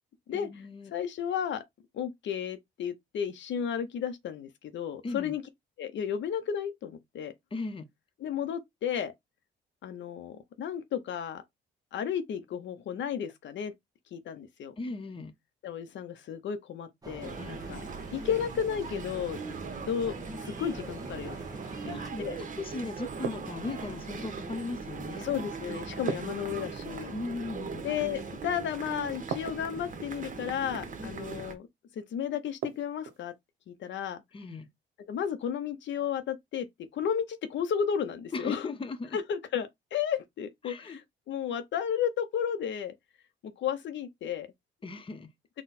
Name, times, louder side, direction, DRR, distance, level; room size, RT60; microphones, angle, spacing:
voice 1, 0.3-0.9 5.0-5.3 7.5-7.9 14.8-15.3 17.4-17.7 21.9-25.3 27.1-27.9 34.3-34.7 38.3-39.2 40.6-41.0 44.8-45.3, left 3 dB, 25° left, 0.8 m, -37 dB
voice 2, 0.9-1.6 1.9-5.4 5.8-7.3 8.2-9.1 9.8-11.4 11.9-13.7 14.1-14.7 15.6-17.8 18.1-19.4 19.9-21.4 21.9-22.4 25.2-27.1 27.8-31.7 32.0-33.3 33.7-34.2 35.1-36.7 36.9-38.7 39.1-42.9 43.4-44.5, left 8 dB, 70° left, 0.7 m, -33 dB
sound 1, 17.0-22.1, right 2 dB, 20° right, 1.1 m, -46 dB
sound 2, 17.2-31.5, right 4 dB, 40° right, 1.1 m, -40 dB
sound 3, 23.2-24.0 26.1-27.1 29.3-30.1 32.6-33.3, right 7 dB, 75° right, 0.8 m, -37 dB
4.2 x 2.2 x 4.1 m
cardioid pair, 90°, 20 cm